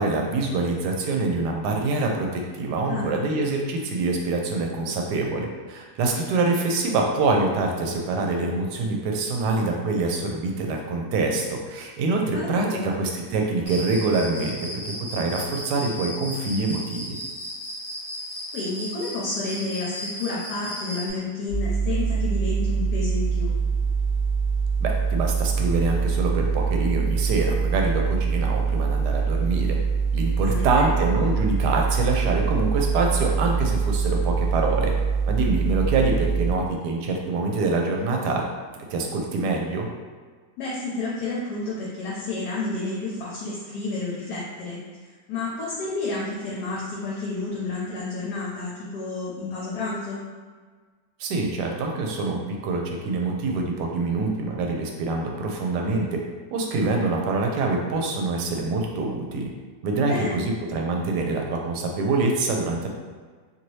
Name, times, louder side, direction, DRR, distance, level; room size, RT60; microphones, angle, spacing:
voice 1, 0.0-14.6 15.1-17.2 24.8-29.8 30.1-34.9 35.3-38.5 38.9-39.9 51.2-56.2 56.5-59.5 59.8-62.9, right 3 dB, 80° right, 1 dB, 1.1 m, -25 dB
voice 2, 2.9-3.3 12.3-12.9 18.5-23.5 30.4-31.1 40.6-44.8 45.3-50.2 60.0-60.5, left 3 dB, 75° left, -6 dB, 1.1 m, -30 dB
Cricket, 13.7-21.1, equal, 15° left, 0.8 m, -35 dB
sound 1, 21.5-36.5, right 5 dB, 60° right, 0.4 m, -24 dB
2.8 x 2.7 x 3.1 m, 1.5 s
omnidirectional pair, 1.8 m